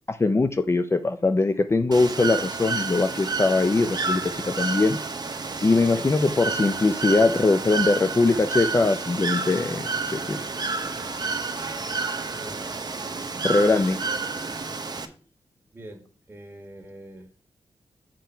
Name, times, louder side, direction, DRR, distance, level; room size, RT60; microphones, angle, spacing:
voice 1, 0.1-5.0 5.6-10.4 13.4-14.0, left 3 dB, 25° left, 9 dB, 0.4 m, -22 dB
Bird / Water, 1.9-15.1, right 4 dB, 40° right, 0.9 m, -30 dB
voice 2, 12.3-12.7 15.7-17.3, right 1 dB, 20° right, 3 dB, 1.8 m, -44 dB
7.3 x 4.5 x 5.6 m, 0.40 s
wide cardioid pair, 100°, 11 cm